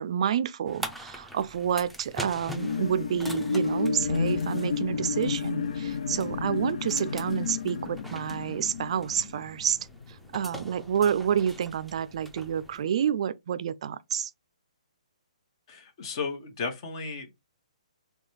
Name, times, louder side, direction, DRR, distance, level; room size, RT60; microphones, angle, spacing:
voice 1, 0.0-9.8 10.3-14.3, right 8 dB, 50° right, 0.4 m, -29 dB
sound 1, 0.7-12.8, equal, ahead, 0.6 m, -44 dB
sound 2, 2.4-10.2 10.6-10.7, left 5 dB, 60° left, 0.4 m, -31 dB
voice 2, 15.7-17.4, left 4 dB, 40° left, 1.1 m, -34 dB
3.8 x 2.3 x 3.1 m
figure-of-eight pair, 135°, 4 cm